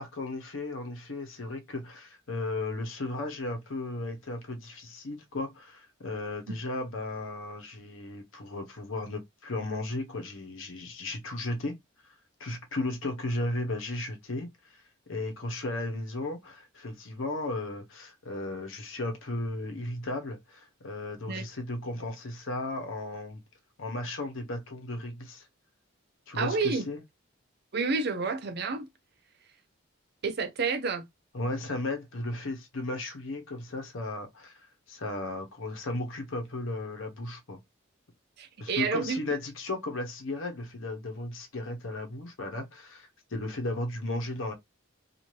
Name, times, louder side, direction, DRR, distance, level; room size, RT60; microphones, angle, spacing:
voice 1, 0.0-11.8 12.4-14.5 15.1-23.4 23.8-25.4 26.3-27.0 31.3-34.5 34.9-37.6 38.6-44.5, left 2 dB, 70° left, 0.9 m, -35 dB
voice 2, 26.3-26.9 27.7-28.9 30.2-31.0 38.4-39.2, right 4 dB, 50° right, 0.5 m, -29 dB
2.6 x 2.4 x 3.1 m
head